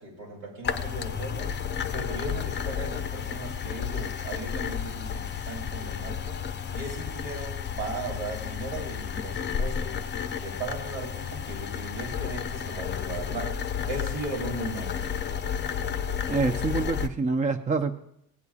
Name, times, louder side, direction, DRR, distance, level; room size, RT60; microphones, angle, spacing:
voice 1, 0.0-1.6 1.9-6.4 6.7-10.0 10.4-15.0, right 2 dB, 85° right, -3 dB, 3.3 m, -37 dB
sound 1, 0.6-17.1, left 7 dB, 30° left, 0.6 m, -32 dB
voice 2, 16.3-18.0, right 4 dB, 20° right, 9 dB, 0.5 m, -26 dB
18.0 x 8.1 x 2.4 m, 0.75 s
cardioid pair, 95°, 35 cm